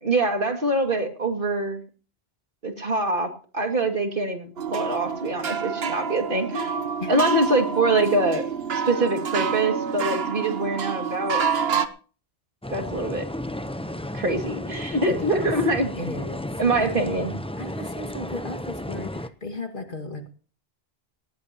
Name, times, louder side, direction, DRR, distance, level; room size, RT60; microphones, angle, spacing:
voice 1, 0.0-1.8 2.6-8.5 8.7-11.4 12.7-13.2 14.1-15.9 16.6-17.3, right 2 dB, 60° right, 4 dB, 2.5 m, -24 dB
sound 1, 4.6-11.9, right 6 dB, 75° right, 1.2 m, -28 dB
voice 2, 7.0-7.4 15.1-15.5 15.9-16.5 16.8-17.0 17.6-20.3, left 2 dB, 55° left, 4 dB, 2.2 m, -35 dB
sound 2, 12.6-19.3, left 1 dB, 5° left, 0.6 m, -33 dB
19.0 x 17.0 x 2.9 m, 0.39 s
omnidirectional pair, 1.1 m